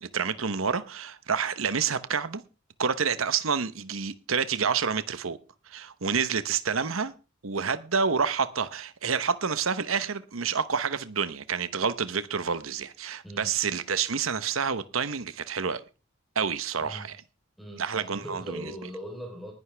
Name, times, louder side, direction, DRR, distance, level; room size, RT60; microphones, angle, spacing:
voice 1, 0.0-2.4 2.8-5.4 5.7-7.1 7.4-15.8 16.3-17.1 17.8-18.6, right 6 dB, 90° right, 1.0 m, -28 dB
voice 2, 16.8-17.1 17.6-19.5, equal, ahead, 3.7 m, -40 dB
19.5 x 11.0 x 3.4 m
head